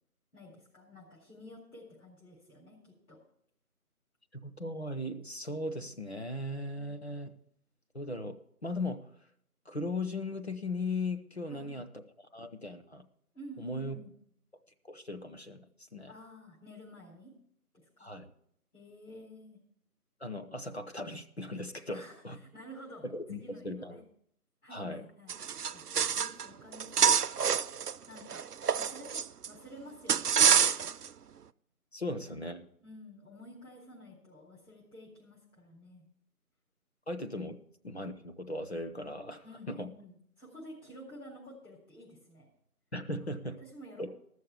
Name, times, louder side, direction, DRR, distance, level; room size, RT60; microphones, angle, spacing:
voice 1, 0.3-3.2 11.5-11.8 13.3-14.1 16.1-17.3 18.0-18.1 18.7-19.6 21.9-23.0 23.3-24.0 24.6-25.3 25.7-25.9 26.1-27.3 28.1-28.5 28.7-30.7 32.0-32.1 32.8-36.0 39.4-42.5 43.6-44.1, equal, 70° left, -5 dB, 4.3 m, -51 dB
voice 2, 4.3-7.3 7.9-9.1 9.7-12.0 12.3-13.0 13.6-14.0 14.8-16.1 18.0-18.3 20.2-22.4 23.0-24.0 24.7-25.1 31.9-32.6 37.1-39.9 42.9-43.6 44.0-44.1, left 1 dB, 45° left, 6 dB, 0.8 m, -38 dB
sound 1, 25.3-26.5 26.7-29.5 30.1-31.1, right 7 dB, 85° right, 0.6 m, -27 dB
14.5 x 6.5 x 6.9 m, 0.70 s
figure-of-eight pair, 175°, 46 cm